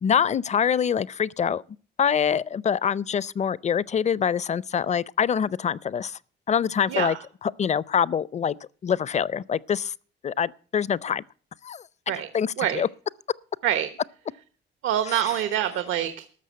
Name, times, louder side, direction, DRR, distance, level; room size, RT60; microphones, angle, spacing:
voice 1, 0.0-1.6 2.0-6.2 6.5-7.2 7.4-8.6 8.8-9.9 10.2-11.2 11.6-11.8 12.3-12.9 15.1-15.2, left 7 dB, 35° left, 0.5 m, -25 dB
voice 2, 6.9-7.2 12.1-12.3 12.6-12.8 13.6-13.9 14.8-16.3, right 11 dB, 85° right, 1.1 m, -25 dB
13.5 x 6.2 x 9.4 m
cardioid pair, 90°, 20 cm